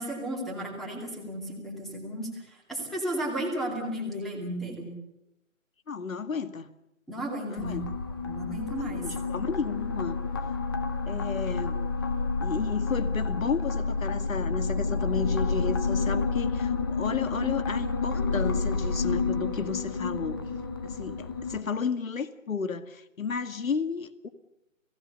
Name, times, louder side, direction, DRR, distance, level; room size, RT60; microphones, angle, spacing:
voice 1, 0.0-4.9 7.1-7.9 8.2-9.0, right 1 dB, ahead, 0 dB, 2.5 m, -34 dB
voice 2, 5.9-6.7 7.5-7.8 8.8-10.2 11.1-11.8 12.4-20.4 20.8-24.3, left 6 dB, 75° left, 12 dB, 2.1 m, -32 dB
sound 1, 7.6-21.6, left 4 dB, 15° left, 0.9 m, -29 dB
29.5 x 17.5 x 6.7 m, 0.88 s
hypercardioid pair, 170°, 40 cm